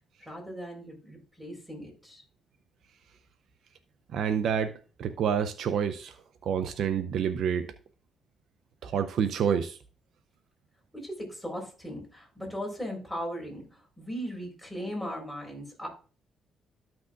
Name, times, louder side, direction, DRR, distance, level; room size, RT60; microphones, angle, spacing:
voice 1, 0.2-2.2 10.9-15.9, equal, ahead, 4.4 m, -38 dB
voice 2, 4.1-4.7 5.0-6.1 6.4-7.7 8.8-9.8, right 7 dB, 70° right, 0.5 m, -28 dB
13.5 x 6.0 x 2.5 m
cardioid pair, 90°, 0 cm